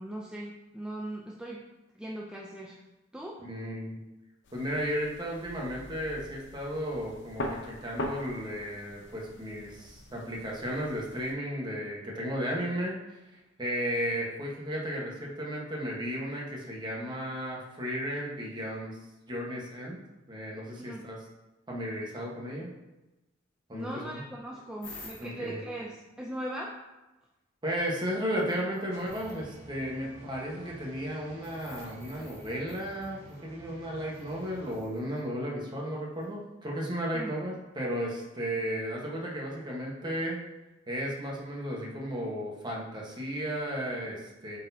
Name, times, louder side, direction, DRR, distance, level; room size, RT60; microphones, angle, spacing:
voice 1, 0.0-1.6 1.9-2.8 3.1-3.4 20.7-21.1 23.7-26.8 37.1-37.3, right 1 dB, 5° right, -3 dB, 0.5 m, -39 dB
voice 2, 3.5-4.0 4.5-13.0 13.6-19.0 19.3-20.0 20.3-21.2 21.7-22.7 23.7-24.2 25.2-25.6 27.6-40.4 40.9-44.6, equal, 25° right, -3 dB, 1.2 m, -34 dB
sound 1, 4.4-11.3, left 1 dB, 60° left, 0.7 m, -42 dB
sound 2, 24.8-25.5 27.8-27.9 28.3-29.4 31.4-33.4 34.1-35.2 36.2-36.3, left 3 dB, 45° left, 1.9 m, -51 dB
sound 3, 28.9-34.8, right 1 dB, 65° right, 1.6 m, -50 dB
8.2 x 4.1 x 2.8 m, 1.1 s
head